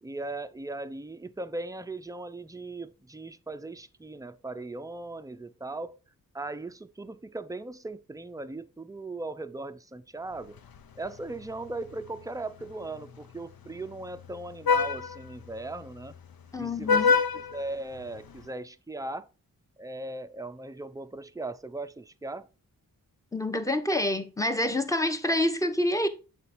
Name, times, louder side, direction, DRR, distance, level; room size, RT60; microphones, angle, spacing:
voice 1, 0.0-6.0 6.3-10.6 11.0-16.2 16.6-19.3 19.8-22.5, right 2 dB, 10° right, 0.5 m, -38 dB
Vehicle horn car horn honking, 10.3-18.5, left 5 dB, 70° left, 0.7 m, -31 dB
voice 2, 16.5-17.1 23.3-26.1, left 1 dB, 10° left, 0.9 m, -27 dB
6.8 x 4.3 x 4.2 m
cardioid pair, 60°, 38 cm